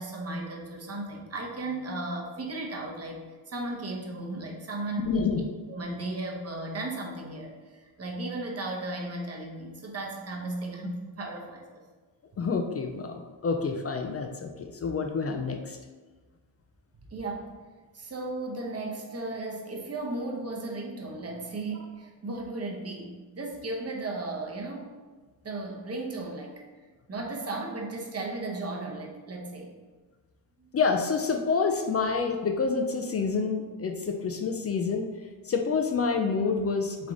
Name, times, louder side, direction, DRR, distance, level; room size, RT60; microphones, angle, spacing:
voice 1, 0.0-3.2 3.5-5.1 5.7-11.8 12.3-12.4 16.9-17.5 17.9-24.9 25.4-26.6 27.1-29.7 30.6-30.7, right 2 dB, 30° right, 0 dB, 0.8 m, -35 dB
voice 2, 5.0-5.5 12.4-15.8 30.7-35.1 35.4-37.1, left 5 dB, 35° left, 4 dB, 0.4 m, -28 dB
3.6 x 3.4 x 3.8 m, 1.3 s
cardioid pair, 90°, 48 cm